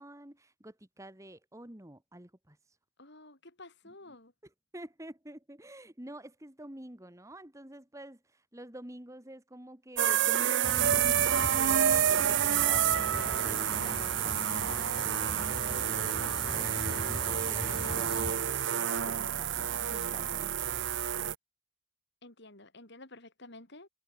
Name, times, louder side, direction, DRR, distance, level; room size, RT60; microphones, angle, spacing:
voice 1, 0.0-2.6 3.9-4.0 4.7-20.6, right 1 dB, 15° right, 1.6 m, -49 dB
voice 2, 3.0-4.3 22.2-23.9, left 2 dB, 50° left, 3.6 m, -51 dB
sound 1, 10.0-21.3, right 9 dB, 55° right, 0.7 m, -29 dB
sound 2, 10.6-18.3, left 1 dB, 20° left, 2.7 m, -40 dB
head